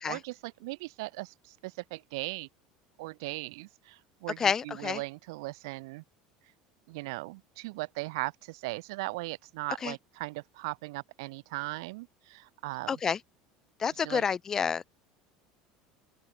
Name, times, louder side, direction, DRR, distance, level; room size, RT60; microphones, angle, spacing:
voice 1, 0.1-2.5 3.0-6.0 6.9-13.0 14.0-14.2, right 24 dB, 85° right, 1.9 m, -38 dB
voice 2, 4.4-5.0 9.8-9.9 12.9-13.2 13.8-14.9, left 6 dB, 20° left, 1.3 m, -29 dB
cardioid pair, 155°, 2 cm